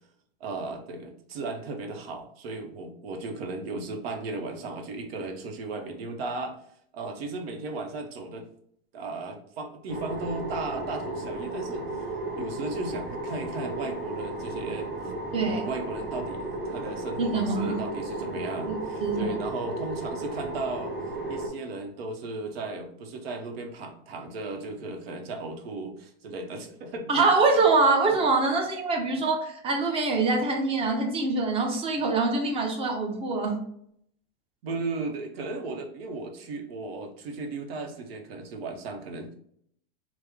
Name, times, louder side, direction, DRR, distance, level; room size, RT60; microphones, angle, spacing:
voice 1, 0.4-6.6 6.9-8.5 8.9-11.8 12.4-14.9 15.4-20.9 21.3-27.1 34.6-39.3, right 3 dB, 75° right, 5 dB, 0.8 m, -35 dB
sound 1, 9.9-21.5, right 2 dB, 35° right, 1.2 m, -34 dB
voice 2, 15.3-15.6 17.2-17.8 18.2-18.3 18.6-19.4 27.1-33.6, right 3 dB, 20° right, 2 dB, 0.6 m, -24 dB
3.0 x 2.0 x 3.5 m, 0.68 s
supercardioid pair, 140°, 30 cm